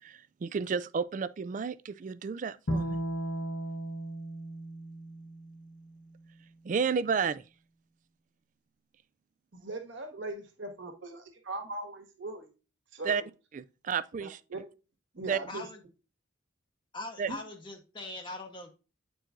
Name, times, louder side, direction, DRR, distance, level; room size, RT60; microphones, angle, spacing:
voice 1, 0.0-3.0 6.6-7.4 13.0-13.2 13.5-14.4 15.3-15.4 17.2-17.3, right 6 dB, 40° right, 0.3 m, -31 dB
Bowed string instrument, 2.7-5.9, right 1 dB, 70° left, 0.9 m, -35 dB
voice 2, 9.5-12.5 12.9-13.2 14.2-14.6 15.1-15.7 17.3-17.4, right 2 dB, 75° right, 1.6 m, -40 dB
voice 3, 15.5-15.8 16.9-18.7, left 2 dB, 25° left, 0.7 m, -41 dB
8.8 x 4.6 x 2.5 m
head